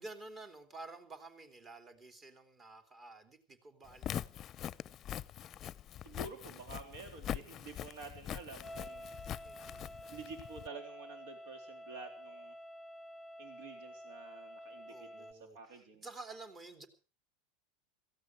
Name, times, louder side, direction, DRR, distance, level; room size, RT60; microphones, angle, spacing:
voice 1, 0.0-4.3 9.4-9.9 14.9-16.9, right 3 dB, 30° right, 7 dB, 3.2 m, -51 dB
Walk footsteps, 3.9-10.7, left 10 dB, 40° left, 0.7 m, -43 dB
voice 2, 6.0-9.1 10.1-12.5 13.4-16.1, right 4 dB, 70° right, 6 dB, 3.6 m, -50 dB
sound 1, 8.6-15.3, equal, ahead, 2.5 m, -50 dB
17.0 x 15.5 x 4.8 m, 0.37 s
hypercardioid pair, 90°, 0 cm